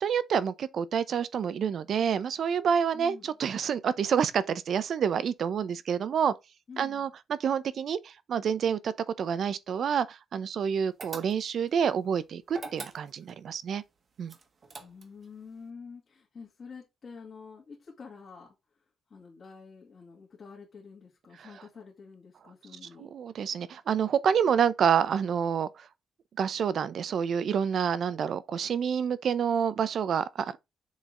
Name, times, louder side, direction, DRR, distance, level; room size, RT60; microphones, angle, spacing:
voice 1, 0.0-6.3 6.8-7.1 7.4-13.8 14.2-14.3 21.4-21.5 23.0-25.7 26.4-30.6, right 7 dB, 55° right, 0.6 m, -28 dB
voice 2, 2.9-3.3 6.7-7.1 14.8-18.5 19.1-23.1, left 5 dB, 40° left, 2.3 m, -48 dB
sound 1, 11.0-11.7 12.5-13.4 14.3-15.3, right 4 dB, 40° right, 1.3 m, -43 dB
7.1 x 4.1 x 3.8 m
cardioid pair, 155°, 0 cm